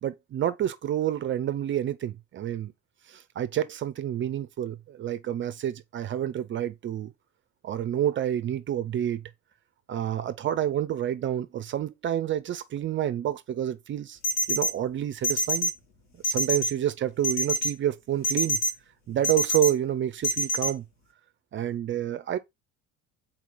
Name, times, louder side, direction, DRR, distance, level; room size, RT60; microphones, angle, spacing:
voice 1, 0.0-2.7 3.1-7.1 7.6-9.2 9.9-14.2 14.5-15.7 16.2-18.6 19.1-20.8 21.5-22.4, right 11 dB, 30° right, 0.4 m, -28 dB
sound 1, 14.2-14.7 15.2-15.7 16.2-16.7 17.2-17.7 18.2-18.7 19.2-19.7 20.2-20.7, left 1 dB, 65° left, 1.3 m, -25 dB
4.1 x 2.9 x 3.8 m
figure-of-eight pair, 55°, 43 cm